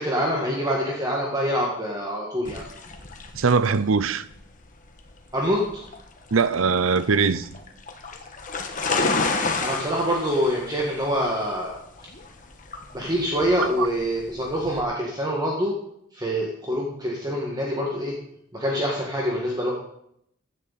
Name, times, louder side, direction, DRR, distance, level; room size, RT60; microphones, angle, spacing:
voice 1, 0.0-2.6 5.3-5.8 9.6-11.8 12.9-15.7 16.1-18.1 18.5-19.7, equal, 20° right, 1.8 m, -25 dB
sound 1, 2.4-14.8, left 3 dB, 40° left, 1.4 m, -31 dB
voice 2, 3.4-4.2 6.3-7.5 13.8-13.9, right 5 dB, 75° right, 0.7 m, -21 dB
15.5 x 10.0 x 4.2 m
head